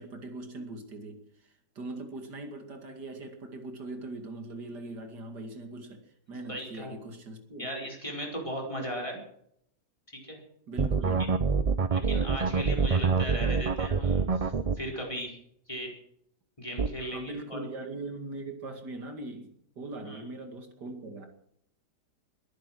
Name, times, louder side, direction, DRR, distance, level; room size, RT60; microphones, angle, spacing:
voice 1, 0.0-7.7 10.7-11.4 17.1-21.3, right 2 dB, 75° right, 5 dB, 2.9 m, -41 dB
voice 2, 6.5-7.0 7.6-9.2 10.1-10.4 11.2-11.3 11.9-15.4 15.7-15.9 16.6-17.6 20.0-20.2, equal, 20° left, 0 dB, 4.8 m, -37 dB
sound 1, 10.8-14.8 16.8-16.9, right 5 dB, 45° right, 0.4 m, -26 dB
21.0 x 10.5 x 6.2 m, 0.70 s
omnidirectional pair, 1.8 m